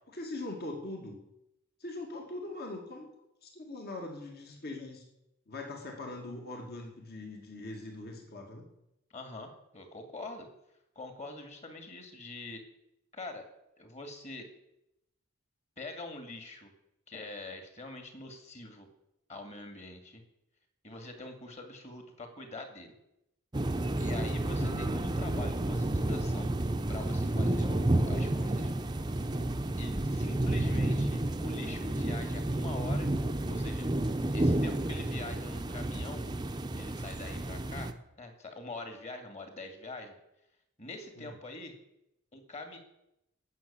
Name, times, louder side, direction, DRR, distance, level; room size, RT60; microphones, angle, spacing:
voice 1, 0.1-1.2 1.8-3.1 3.4-5.1 5.5-8.6 24.6-24.9 41.2-41.3, left 2 dB, 50° left, 2 dB, 2.3 m, -41 dB
voice 2, 9.1-10.5 11.0-12.6 13.1-13.5 13.8-14.5 15.8-16.7 17.1-18.9 19.3-20.2 20.8-23.0 24.0-26.5 26.9-28.7 29.8-33.9 34.3-36.3 36.8-40.1 40.8-41.8 42.3-42.8, left 2 dB, 35° left, 5 dB, 2.5 m, -44 dB
sound 1, 23.5-37.9, right 1 dB, 20° right, 0.7 m, -31 dB
16.0 x 6.6 x 8.8 m, 0.85 s
head